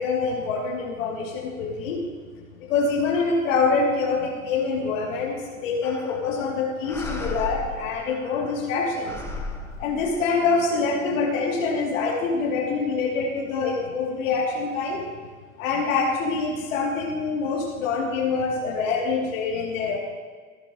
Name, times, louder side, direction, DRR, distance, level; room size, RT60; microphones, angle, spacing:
voice 1, 0.0-2.0 2.6-9.2 9.8-15.0 15.6-20.0, left 4 dB, 60° left, -3 dB, 4.1 m, -25 dB
sound 1, 5.8-6.4 6.8-8.7 9.0-10.6, left 2 dB, 5° left, 1.1 m, -36 dB
19.0 x 11.0 x 3.6 m, 1.5 s
hypercardioid pair, 125°, 43 cm